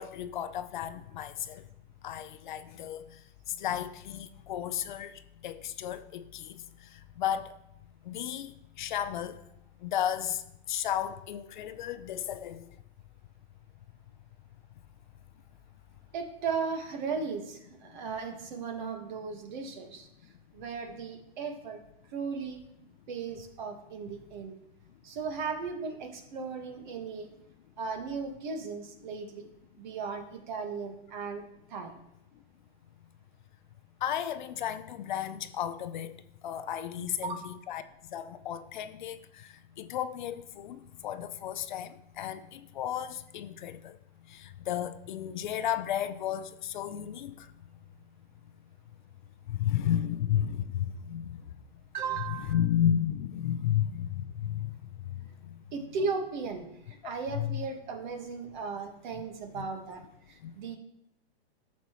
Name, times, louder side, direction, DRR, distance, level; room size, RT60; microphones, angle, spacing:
voice 1, 0.0-1.6 2.0-3.2 3.5-7.6 8.0-9.4 9.8-12.7 34.0-36.2 36.4-37.8 38.1-44.0 44.3-47.5 49.5-51.3 52.3-55.2 57.3-57.6 59.5-59.7 60.4-60.5, left 10 dB, 50° left, 0.6 m, -33 dB
voice 2, 16.1-20.1 20.5-21.8 22.1-22.6 23.1-24.5 25.0-27.3 27.8-29.5 29.8-31.4 31.7-31.9 37.0-37.4 51.9-52.6 55.7-60.0 60.3-60.8, right 5 dB, 45° right, 1.6 m, -36 dB
12.5 x 7.1 x 3.1 m
hypercardioid pair, 155°, 31 cm